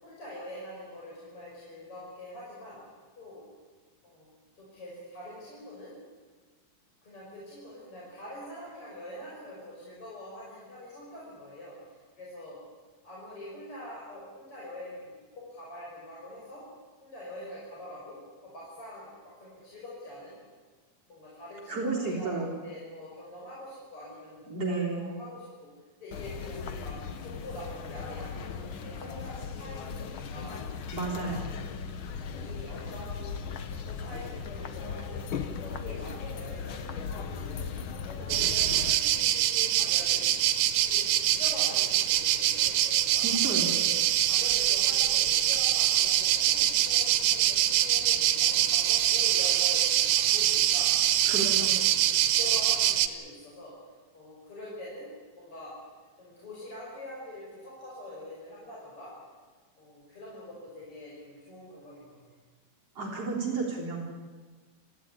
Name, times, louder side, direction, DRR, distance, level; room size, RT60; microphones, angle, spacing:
voice 1, 0.0-2.8 3.2-3.5 4.0-5.9 7.0-12.6 13.0-16.6 17.0-20.3 21.1-25.7 26.0-30.6 31.0-31.4 32.3-33.4 33.7-37.7 38.1-40.2 40.8-43.3 43.7-44.0 44.2-50.9 51.2-51.9 52.2-53.7 54.1-55.1 55.4-55.8 56.2-59.1 59.8-62.2, left 1 dB, 40° left, -6 dB, 6.8 m, -44 dB
voice 2, 21.7-22.5 24.5-25.1 30.9-31.5 43.2-43.7 51.3-51.7 63.0-64.0, right 3 dB, 45° right, -3 dB, 4.5 m, -31 dB
sound 1, 26.1-38.9, left 6 dB, 65° left, 1.2 m, -37 dB
sound 2, 38.3-53.1, right 12 dB, 85° right, 2.8 m, -24 dB
25.5 x 14.5 x 9.8 m, 1.4 s
omnidirectional pair, 4.0 m